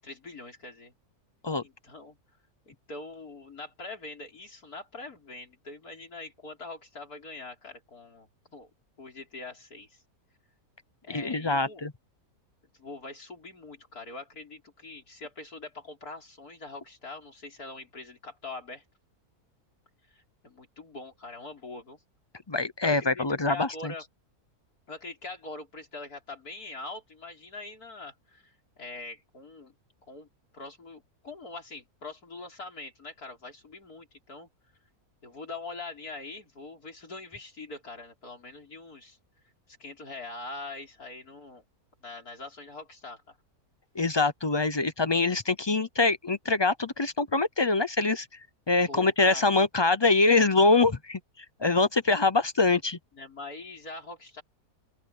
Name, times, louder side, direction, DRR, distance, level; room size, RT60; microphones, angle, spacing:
voice 1, 0.0-0.9 1.6-2.2 2.7-8.7 9.0-10.0 11.0-11.8 12.8-18.8 20.1-22.0 22.8-24.0 24.9-29.7 30.1-30.3 30.5-34.5 35.2-39.2 39.7-41.6 42.0-43.4 48.9-49.6 53.1-54.4, left 3 dB, 75° left, 5.4 m, -43 dB
voice 2, 11.1-11.9 22.5-23.9 43.9-48.3 48.7-51.2 51.6-53.0, left 3 dB, 30° left, 0.4 m, -24 dB
open air
omnidirectional pair, 1.6 m